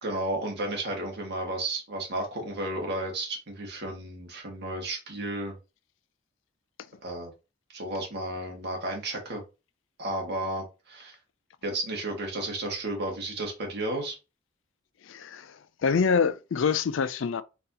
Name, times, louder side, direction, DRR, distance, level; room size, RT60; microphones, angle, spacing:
voice 1, 0.0-5.6 7.0-7.3 7.7-9.4 10.0-11.2 11.6-14.2, right 1 dB, 60° right, 1.8 m, -33 dB
voice 2, 15.0-17.4, left 5 dB, 75° left, 0.4 m, -26 dB
4.0 x 3.9 x 2.8 m
head